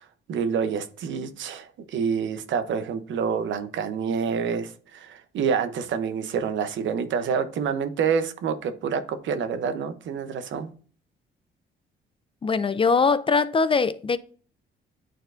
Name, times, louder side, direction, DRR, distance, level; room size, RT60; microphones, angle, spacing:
voice 1, 0.0-10.7, right 6 dB, 70° right, 0.8 m, -27 dB
voice 2, 12.4-14.2, left 4 dB, 25° left, 0.4 m, -21 dB
9.1 x 4.3 x 2.6 m
cardioid pair, 90°, 20 cm